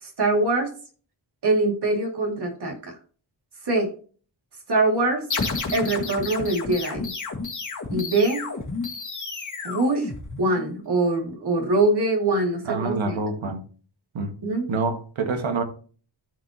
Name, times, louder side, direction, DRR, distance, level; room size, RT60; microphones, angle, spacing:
voice 1, 0.0-0.7 1.4-2.9 3.7-3.9 4.7-5.2 5.7-7.1 7.9-8.4 9.6-10.1 10.4-13.1 14.4-14.7, right 2 dB, 60° right, 1 dB, 2.6 m, -23 dB
sound 1, 5.3-10.7, left 4 dB, 40° left, 1.9 m, -31 dB
voice 2, 12.7-13.6 14.1-14.3 14.7-15.6, right 3 dB, 85° right, 4 dB, 1.8 m, -26 dB
14.0 x 5.2 x 2.9 m, 0.40 s
wide cardioid pair, 170°, 45 cm